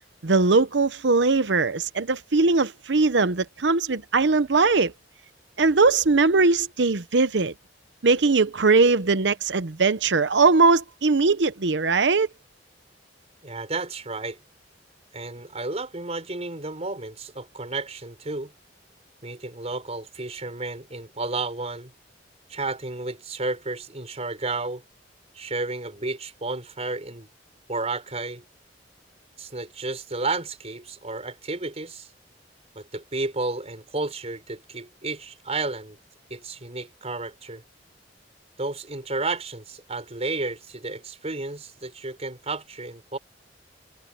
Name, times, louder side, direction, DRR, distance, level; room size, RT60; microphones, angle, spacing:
voice 1, 0.2-4.9 5.6-7.5 8.0-12.3, right 3 dB, 70° right, 0.8 m, -20 dB
voice 2, 13.4-14.4 15.1-18.5 19.2-21.9 22.5-24.8 25.3-27.3 27.7-28.4 29.4-32.1 32.7-36.0 36.3-37.6 38.6-43.2, right 3 dB, 35° right, 4.7 m, -32 dB
head